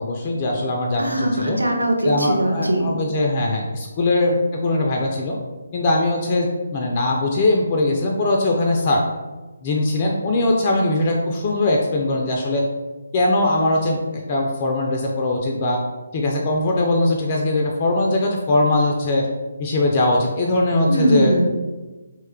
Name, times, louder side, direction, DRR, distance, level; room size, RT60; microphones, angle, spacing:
voice 1, 0.0-1.6 2.0-5.4 5.7-9.0 9.6-12.6 13.1-15.8 16.1-19.3 19.6-21.3, left 2 dB, 35° left, 0 dB, 0.3 m, -21 dB
voice 2, 1.0-2.9 20.9-21.5, right 1 dB, 85° right, 1 dB, 0.6 m, -20 dB
2.9 x 2.2 x 3.5 m, 1.2 s
figure-of-eight pair, 145°, 0 cm